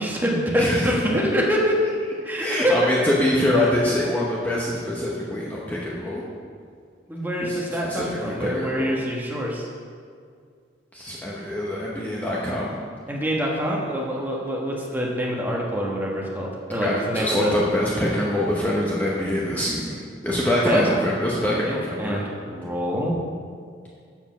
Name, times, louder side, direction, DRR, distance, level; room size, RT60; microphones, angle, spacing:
voice 1, 0.0-1.8 2.2-2.8 7.1-9.7 13.1-17.5 20.6-20.8 21.6-23.2, equal, 10° right, -3 dB, 1.3 m, -25 dB
voice 2, 0.6-1.3 2.4-6.2 7.4-7.6 7.8-8.9 10.9-12.7 16.8-22.2, left 1 dB, 10° left, -5 dB, 0.9 m, -24 dB
7.3 x 6.9 x 5.7 m, 2.2 s
head